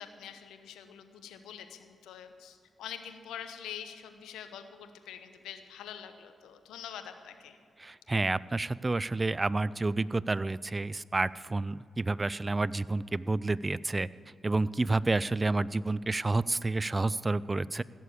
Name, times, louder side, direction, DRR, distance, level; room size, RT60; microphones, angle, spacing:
voice 1, 0.0-7.6, left 9 dB, 85° left, 8 dB, 0.9 m, -45 dB
voice 2, 7.8-14.1 14.4-17.8, right 2 dB, 30° right, 20 dB, 0.4 m, -29 dB
16.5 x 6.9 x 8.4 m, 2.4 s
supercardioid pair, 45°, 0 cm